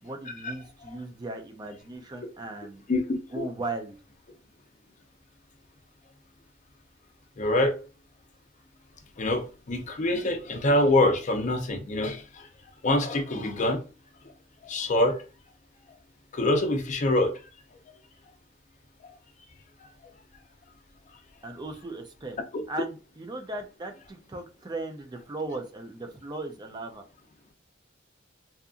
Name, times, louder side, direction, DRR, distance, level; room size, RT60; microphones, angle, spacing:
voice 1, 0.0-2.8 3.3-3.9 21.4-22.4 22.7-27.0, right 2 dB, 20° right, 0.3 m, -37 dB
voice 2, 2.9-3.5 7.4-7.8 9.2-12.5 12.8-13.8 14.6-15.2 16.3-17.4 22.5-22.6, left 1 dB, 40° left, 0.5 m, -25 dB
2.7 x 2.4 x 2.4 m
head